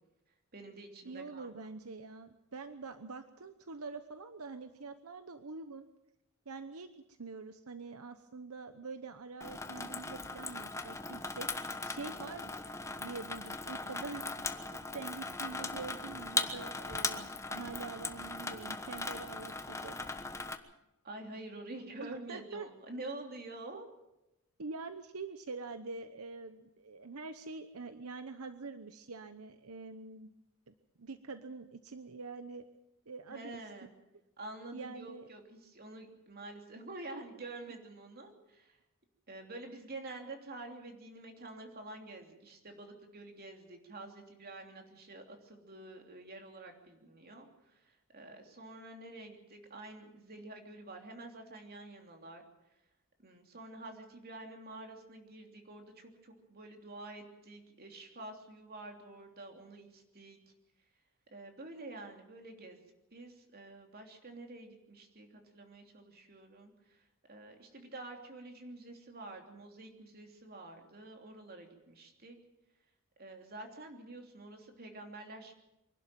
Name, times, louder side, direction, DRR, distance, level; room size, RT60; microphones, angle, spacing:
voice 1, 0.5-1.5 21.0-23.9 33.3-33.9 34.4-38.8 39.3-52.4 53.2-60.4 61.3-62.8 63.1-72.4 73.2-75.5, right 2 dB, 45° right, 3 dB, 3.1 m, -48 dB
voice 2, 1.0-5.9 6.5-12.5 13.0-14.2 14.9-20.1 22.0-22.7 24.6-30.3 30.7-32.6 33.1-33.6 34.7-35.3, right 4 dB, 80° right, 10 dB, 1.0 m, -45 dB
Water tap faucet / Sink (filling or washing), 9.4-20.6, left 3 dB, 15° left, 1.1 m, -39 dB
25.0 x 12.0 x 9.1 m, 0.92 s
head